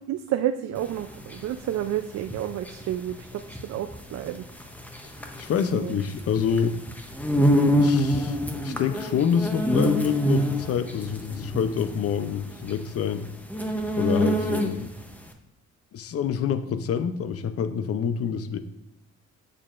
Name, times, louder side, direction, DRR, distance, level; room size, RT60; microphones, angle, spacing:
voice 1, 0.1-4.5 5.7-5.9, right 11 dB, 60° right, 8 dB, 0.4 m, -30 dB
sound 1, 0.8-15.0, equal, 5° left, 0.7 m, -26 dB
voice 2, 5.0-6.8 7.8-8.4 8.6-13.3 14.0-14.9 15.9-18.6, left 7 dB, 50° left, 11 dB, 0.6 m, -27 dB
7.4 x 6.7 x 2.5 m, 0.87 s
cardioid pair, 90°, 30 cm